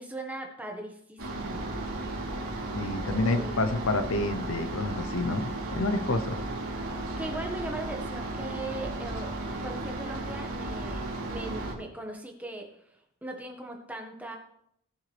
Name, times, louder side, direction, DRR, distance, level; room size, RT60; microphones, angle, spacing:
voice 1, 0.0-1.7 3.0-3.5 7.2-9.3 9.6-14.4, right 2 dB, 5° right, 2 dB, 1.5 m, -39 dB
sound 1, 1.2-11.7, right 2 dB, 80° right, 3.5 m, -35 dB
voice 2, 2.7-6.4, left 2 dB, 65° left, 9 dB, 0.8 m, -29 dB
19.5 x 7.0 x 3.4 m, 0.71 s
head